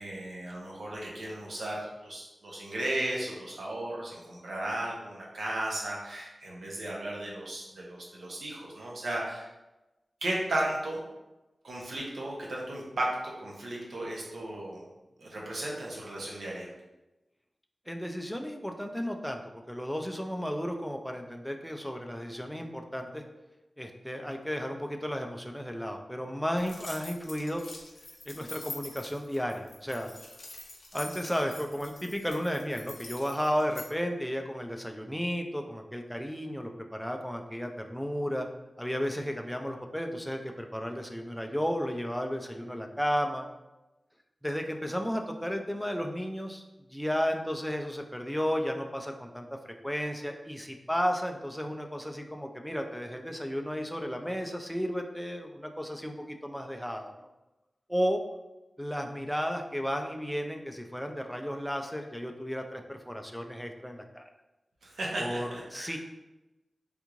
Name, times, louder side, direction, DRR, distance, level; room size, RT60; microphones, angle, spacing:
voice 1, 0.0-9.5 10.2-11.0 11.6-14.8 15.2-16.7 64.8-66.0, right 1 dB, 85° right, -3 dB, 0.8 m, -35 dB
voice 2, 17.9-19.4 19.7-23.2 23.8-27.6 28.3-30.1 30.9-38.5 38.8-43.5 44.4-46.6 46.9-57.3 57.9-58.2 58.8-64.2 65.2-66.0, equal, ahead, 3 dB, 0.3 m, -33 dB
sound 1, 26.6-33.9, left 2 dB, 85° left, 0.6 m, -45 dB
3.5 x 2.4 x 3.0 m, 1.0 s
wide cardioid pair, 90°, 0 cm